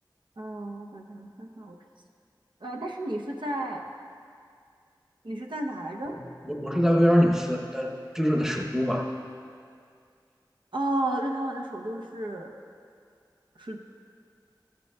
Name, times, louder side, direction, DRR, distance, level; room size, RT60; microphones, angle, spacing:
voice 1, 0.4-1.8 2.6-3.9 5.2-6.2 10.7-12.5 13.6-13.8, right 1 dB, 80° right, 0 dB, 0.7 m, -32 dB
voice 2, 6.1-9.1, equal, 5° right, 1 dB, 0.8 m, -24 dB
13.5 x 8.9 x 2.3 m, 2.3 s
wide cardioid pair, 45°, 8 cm